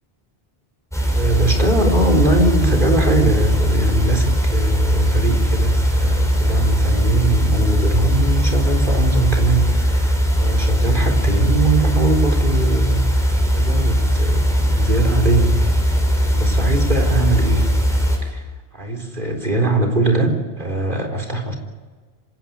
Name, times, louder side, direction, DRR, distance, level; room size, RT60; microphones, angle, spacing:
sound 1, 0.9-18.2, equal, 5° left, 6.2 m, -18 dB
voice 1, 1.1-15.8 16.3-17.7 18.2-18.4 18.7-21.6, right 2 dB, 50° right, 2 dB, 4.2 m, -21 dB
26.5 x 17.0 x 9.5 m, 1.4 s
omnidirectional pair, 1.1 m